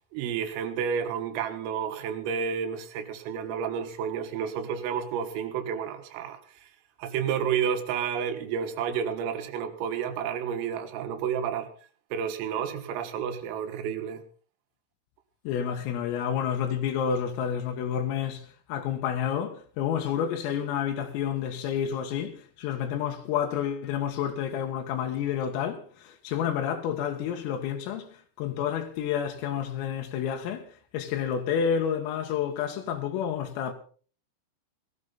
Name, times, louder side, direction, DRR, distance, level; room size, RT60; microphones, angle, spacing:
voice 1, 0.1-6.7 7.0-11.7 12.1-14.2, right 7 dB, 85° right, 4.1 m, -31 dB
voice 2, 15.5-33.7, left 8 dB, 90° left, 4.1 m, -30 dB
18.5 x 13.5 x 4.0 m
omnidirectional pair, 5.8 m